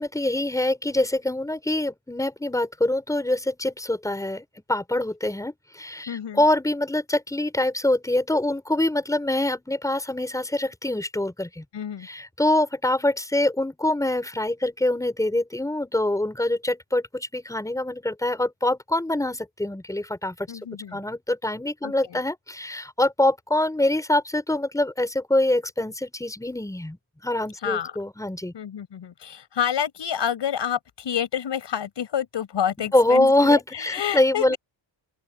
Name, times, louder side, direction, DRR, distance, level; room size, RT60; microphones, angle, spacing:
voice 1, 0.0-11.6 12.0-20.5 20.9-28.5 32.8-34.6, left 1 dB, 5° left, 4.7 m, -24 dB
voice 2, 6.1-6.4 11.7-12.1 20.5-21.0 21.8-22.2 27.6-28.0 28.5-34.6, left 9 dB, 65° left, 5.8 m, -29 dB
open air
wide cardioid pair, 150°, 46 cm